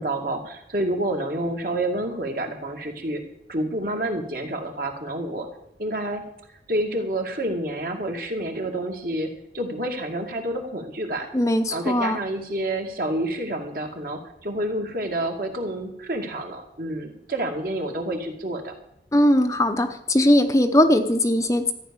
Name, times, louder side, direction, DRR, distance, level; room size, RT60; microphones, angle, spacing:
voice 1, 0.0-3.2 3.5-5.5 5.8-6.2 6.7-11.3 11.7-18.7, right 1 dB, 55° right, 3 dB, 2.4 m, -28 dB
voice 2, 11.3-12.2 19.1-21.7, left 1 dB, 20° left, 7 dB, 0.7 m, -19 dB
14.0 x 9.7 x 7.1 m, 0.77 s
head